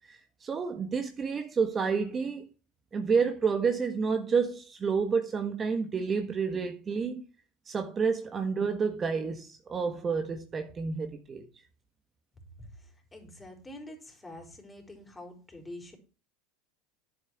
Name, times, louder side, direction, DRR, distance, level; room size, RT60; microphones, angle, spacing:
voice 1, 0.1-2.5 2.9-7.2 7.7-11.4, right 5 dB, 30° right, 1.6 m, -29 dB
voice 2, 12.6-16.0, left 1 dB, 15° left, 4.6 m, -46 dB
10.5 x 8.0 x 4.7 m
hypercardioid pair, 90°, 0 cm